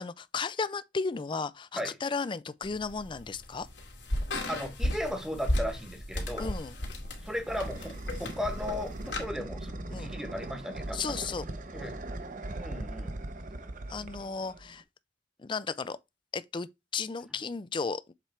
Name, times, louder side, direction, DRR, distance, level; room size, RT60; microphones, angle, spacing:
voice 1, 0.0-3.7 6.4-6.8 9.9-10.1 10.9-11.4 13.9-14.8 15.4-16.0 16.3-16.7 16.9-18.0, left 4 dB, 25° left, 0.4 m, -34 dB
Walk Across Floor, 2.6-9.3, left 1 dB, 75° left, 2.1 m, -35 dB
voice 2, 4.5-6.5 7.2-11.3 11.7-12.0 12.5-13.2, equal, 5° right, 1.2 m, -36 dB
sound 1, 6.9-14.8, right 2 dB, 45° right, 0.8 m, -40 dB
7.4 x 3.4 x 4.4 m
head